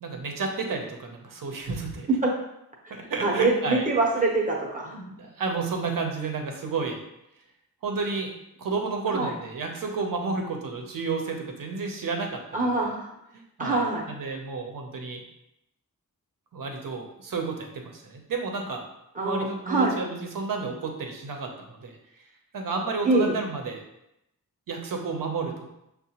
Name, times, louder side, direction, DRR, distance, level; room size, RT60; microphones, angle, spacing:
voice 1, 0.0-2.1 2.9-3.9 5.0-7.0 7.8-8.3 8.6-12.4 12.7-12.9 13.3-15.2 16.5-18.8 19.2-22.0 22.5-23.8 24.7-25.7, right 4 dB, 65° right, 3 dB, 0.7 m, -31 dB
voice 2, 3.2-5.0 9.1-9.3 12.5-13.1 13.6-14.0 19.2-20.0 23.0-23.4, right 2 dB, 20° right, -2 dB, 0.8 m, -24 dB
6.4 x 2.2 x 2.8 m, 0.83 s
wide cardioid pair, 165°, 36 cm